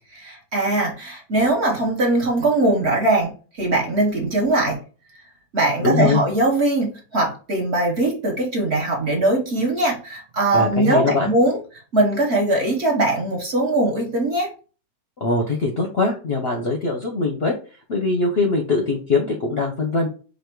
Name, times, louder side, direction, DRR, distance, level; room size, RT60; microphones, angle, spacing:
voice 1, 0.2-4.8 5.5-11.6 11.9-14.5, right 2 dB, 45° right, 1 dB, 1.0 m, -21 dB
voice 2, 5.8-6.2 10.5-11.3 15.2-17.6 17.9-20.1, left 3 dB, 55° left, 2 dB, 0.7 m, -22 dB
4.2 x 2.7 x 4.5 m, 0.37 s
omnidirectional pair, 1.8 m